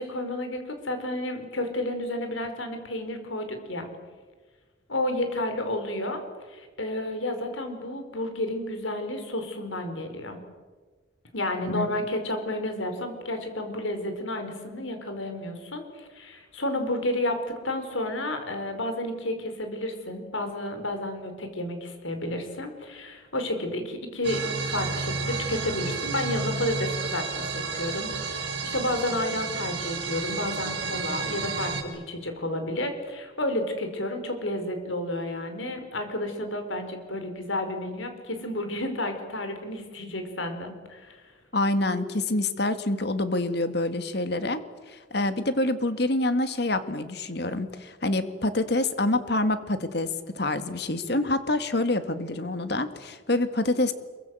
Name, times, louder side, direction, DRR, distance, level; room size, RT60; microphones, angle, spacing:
voice 1, 0.0-3.9 4.9-6.2 6.5-10.4 11.3-41.3, left 1 dB, 85° left, 6 dB, 5.0 m, -31 dB
sound 1, 24.2-31.8, right 4 dB, 60° right, 4.6 m, -31 dB
voice 2, 41.5-44.6 44.9-53.9, left 2 dB, 55° left, 10 dB, 2.0 m, -26 dB
26.5 x 23.5 x 8.0 m, 1.4 s
head